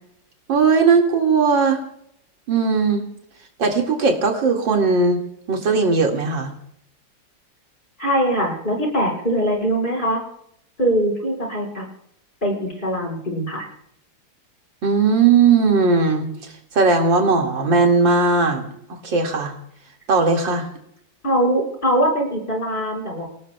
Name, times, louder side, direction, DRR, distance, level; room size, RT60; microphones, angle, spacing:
voice 1, 0.5-1.8 2.5-3.1 3.6-5.2 5.5-6.5 14.8-18.6 18.9-19.5 20.1-20.7, right 4 dB, 85° right, 2 dB, 2.9 m, -18 dB
voice 2, 8.0-10.2 10.8-11.9 12.4-13.7 21.2-23.3, right 1 dB, 25° left, 0 dB, 5.5 m, -22 dB
28.0 x 18.0 x 2.3 m, 0.73 s
omnidirectional pair, 2.0 m